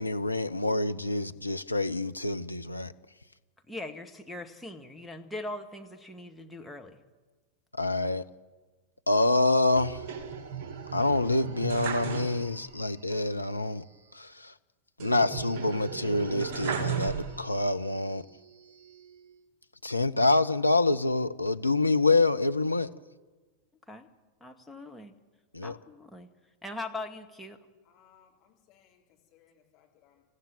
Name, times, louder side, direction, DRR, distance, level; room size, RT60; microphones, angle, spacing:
voice 1, 0.0-2.9 7.8-8.2 9.1-10.0 10.9-13.8 14.1-14.5 15.0-18.2 19.8-22.9 25.5-25.8, left 2 dB, 85° left, 9 dB, 0.7 m, -26 dB
voice 2, 3.7-7.0 23.9-24.1 24.4-25.1 25.6-26.3 26.6-27.6, left 2 dB, 5° left, 2 dB, 1.9 m, -40 dB
sound 1, 9.8-12.8 13.1-13.2 15.0-17.7 18.3-19.1, right 6 dB, 45° right, 2.3 m, -36 dB
voice 3, 27.8-30.2, left 9 dB, 40° left, 0 dB, 4.3 m, -64 dB
27.5 x 15.0 x 9.2 m, 1.3 s
figure-of-eight pair, 90°, 0 cm